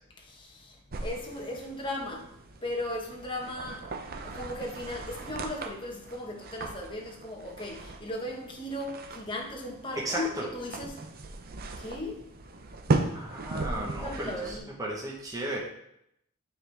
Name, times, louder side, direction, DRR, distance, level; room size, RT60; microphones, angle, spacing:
voice 1, 0.2-2.3 2.6-3.9 4.2-11.0 11.8-12.3 13.6-14.8, left 1 dB, 20° left, -1 dB, 1.1 m, -37 dB
sound 1, 0.9-14.6, right 3 dB, 45° right, 0.6 m, -37 dB
voice 2, 9.9-10.5 13.1-15.6, right 1 dB, 15° right, -3 dB, 1.1 m, -34 dB
9.5 x 4.0 x 3.4 m, 0.75 s
head